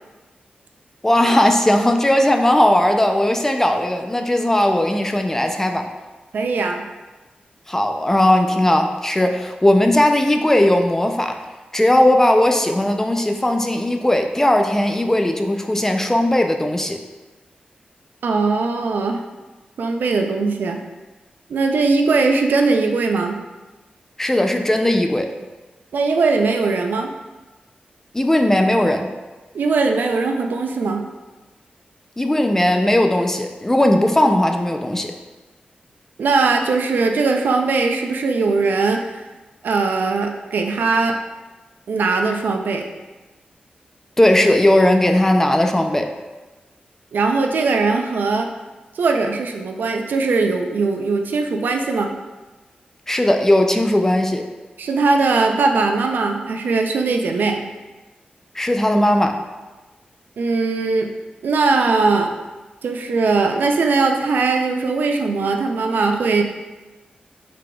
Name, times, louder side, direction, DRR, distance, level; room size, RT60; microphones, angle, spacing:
voice 1, 1.0-5.9 7.7-11.4 11.7-17.0 24.2-25.3 28.1-29.1 32.2-35.1 44.2-46.1 53.1-54.4 58.5-59.4, left 1 dB, 15° left, 5 dB, 0.3 m, -17 dB
voice 2, 6.3-6.8 18.2-19.2 19.8-20.8 21.5-23.4 25.9-27.1 29.5-31.0 36.2-39.2 39.6-41.2 41.9-42.9 47.1-48.5 49.0-52.1 54.8-57.6 60.4-61.1 61.4-62.3 62.8-66.4, right 4 dB, 80° right, 4 dB, 0.4 m, -20 dB
4.9 x 3.7 x 2.2 m, 1.2 s
wide cardioid pair, 100°, 3 cm